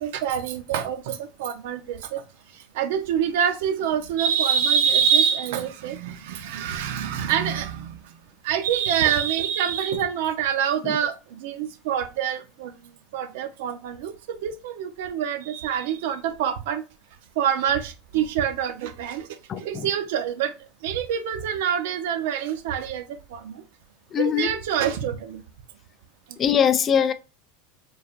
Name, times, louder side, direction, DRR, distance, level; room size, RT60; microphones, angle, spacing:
voice 1, 0.0-2.2 2.5-8.2 8.4-12.7 13.1-16.8 17.4-20.5 20.8-23.0 23.3-23.6 24.2-25.4 26.3-26.4, right 8 dB, 70° right, 0.7 m, -26 dB
voice 2, 19.5-19.9 24.1-24.5 26.4-27.1, left 8 dB, 30° left, 0.3 m, -22 dB
4.7 x 3.2 x 2.5 m
supercardioid pair, 130°, 0 cm